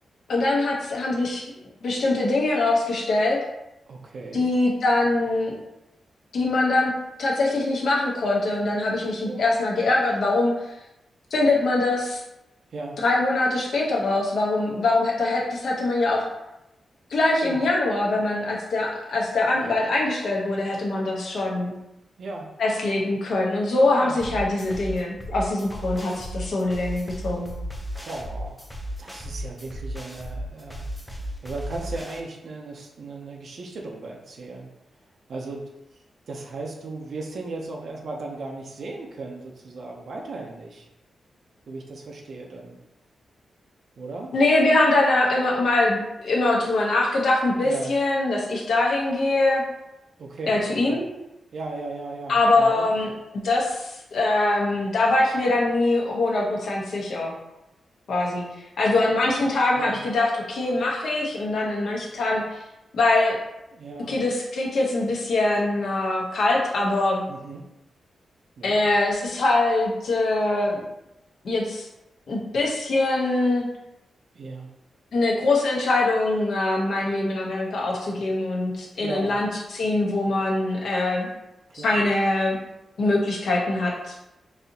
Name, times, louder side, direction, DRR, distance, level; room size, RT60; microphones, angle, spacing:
voice 1, 0.3-1.5 1.8-3.4 4.3-5.5 6.3-6.9 7.2-10.5 11.3-12.2 13.0-16.2 17.1-21.7 22.6-27.5 44.3-49.6 50.5-51.0 52.3-53.1 53.4-57.3 58.1-62.6 62.9-63.4 64.1-67.2 68.6-70.8 71.4-71.9 72.3-73.6 75.1-81.3 81.7-82.6 83.0-84.1, left 2 dB, 75° left, -2 dB, 0.8 m, -23 dB
voice 2, 3.9-4.5 9.2-9.9 12.7-13.0 17.4-17.6 22.2-22.5 23.9-24.4 28.0-28.7 29.0-30.8 31.4-34.7 35.3-35.7 36.3-40.9 41.7-42.8 44.0-44.3 47.6-47.9 50.2-51.0 51.5-52.9 59.7-60.0 63.7-64.2 67.3-67.6 68.6-68.8 74.3-74.7 79.0-79.4 81.7-82.0, right 3 dB, 60° right, 0 dB, 0.5 m, -36 dB
sound 1, 24.2-32.2, equal, ahead, 0.5 m, -35 dB
4.0 x 2.7 x 2.7 m, 0.90 s
wide cardioid pair, 115°, 0 cm